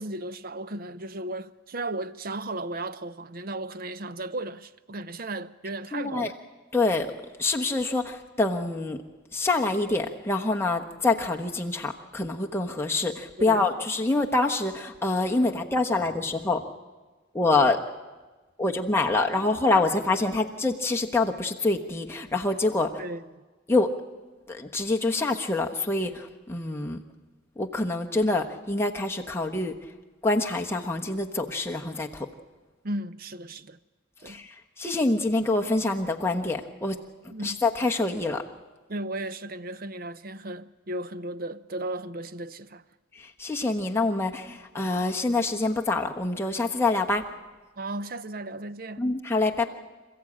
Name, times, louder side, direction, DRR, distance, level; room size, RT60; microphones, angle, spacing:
voice 1, 0.0-6.3 13.4-13.7 23.0-23.4 32.8-33.8 34.2-34.4 37.3-37.6 38.9-42.8 47.8-49.0, right 2 dB, 50° right, 0.6 m, -35 dB
voice 2, 5.9-6.3 6.7-7.1 7.4-9.0 9.3-16.6 17.3-17.8 18.6-22.9 23.7-23.9 24.5-27.0 27.6-29.7 30.2-32.3 34.2-37.0 37.4-38.4 43.2-47.2 49.0-49.7, left 2 dB, 10° left, 1.1 m, -26 dB
27.0 x 14.5 x 8.7 m
head